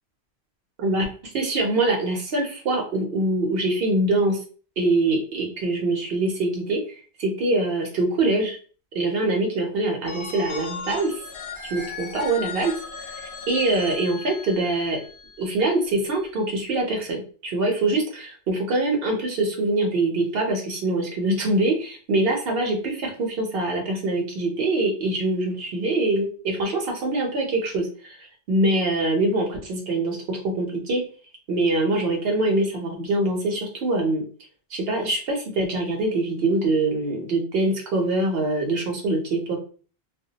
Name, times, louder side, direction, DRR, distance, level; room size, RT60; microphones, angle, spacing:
voice 1, 1.3-4.4 4.8-6.8 7.2-8.6 8.9-11.1 11.7-12.7 13.5-15.0 15.4-31.0 31.5-34.2 34.7-39.6, right 2 dB, 65° right, 1 dB, 0.8 m, -24 dB
Telephone, 10.1-15.8, left 4 dB, 60° left, 0.7 m, -37 dB
2.2 x 2.1 x 2.7 m, 0.40 s
omnidirectional pair, 1.1 m